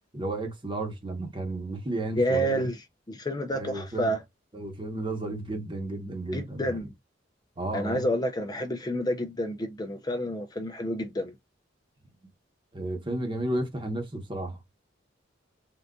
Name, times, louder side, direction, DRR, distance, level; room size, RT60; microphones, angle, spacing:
voice 1, 0.1-2.7 3.5-4.1 4.5-6.8 7.6-8.1 12.7-14.6, right 2 dB, 25° right, 1.0 m, -33 dB
voice 2, 2.2-4.2 6.3-6.9 7.7-11.3, equal, 20° left, 0.4 m, -29 dB
3.7 x 2.5 x 2.2 m
head